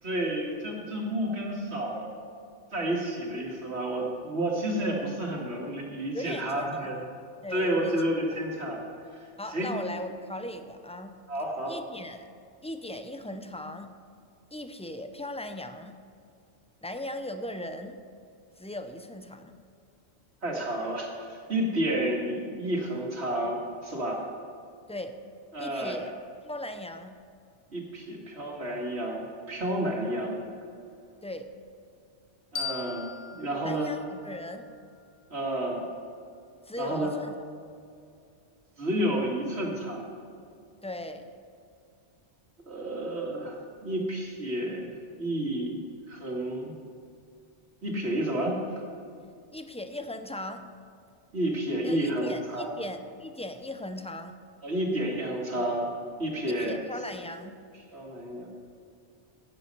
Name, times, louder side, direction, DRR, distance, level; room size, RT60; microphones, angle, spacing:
voice 1, 0.0-2.1 2.7-7.0 7.5-8.8 9.5-9.7 11.3-11.7 20.4-24.2 25.5-26.0 27.7-30.4 32.5-33.9 35.3-35.9 36.8-37.1 38.8-40.1 42.7-45.8 46.1-46.8 47.8-48.6 51.3-52.7 54.6-55.9 56.2-56.8 57.9-58.5, right 1 dB, 75° right, -1 dB, 2.3 m, -30 dB
voice 2, 6.1-7.0 7.4-8.0 8.3-8.4 9.4-11.2 11.7-12.3 12.6-13.9 14.5-16.0 16.8-18.0 18.6-19.5 24.9-25.2 25.6-26.1 26.5-27.2 31.2-31.5 33.6-34.7 36.6-37.4 40.8-41.3 49.5-50.7 51.8-54.4 56.5-57.6, left 1 dB, 10° left, 8 dB, 0.3 m, -38 dB
sound 1, 32.5-35.3, left 6 dB, 80° left, 1.3 m, -40 dB
10.5 x 9.0 x 6.5 m, 2.4 s
omnidirectional pair, 1.1 m